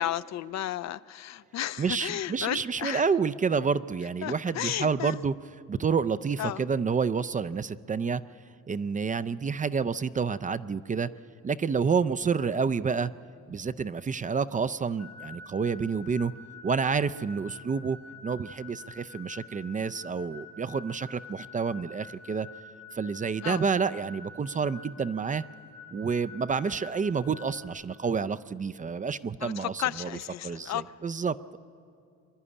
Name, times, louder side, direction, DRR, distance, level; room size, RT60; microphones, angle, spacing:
voice 1, 0.0-3.0 4.2-5.2 6.4-6.6 23.4-23.6 29.4-30.8, left 12 dB, 60° left, 16 dB, 0.5 m, -33 dB
voice 2, 1.8-5.4 5.7-8.2 8.7-11.1 11.4-13.1 13.5-16.3 16.6-18.0 18.2-22.5 22.9-25.4 25.9-30.1 30.4-31.6, right 5 dB, 25° right, 14 dB, 0.4 m, -29 dB
sound 1, 15.0-27.7, left 4 dB, 80° left, 3.8 m, -48 dB
24.0 x 11.5 x 9.8 m, 2.6 s
cardioid pair, 90°, 30 cm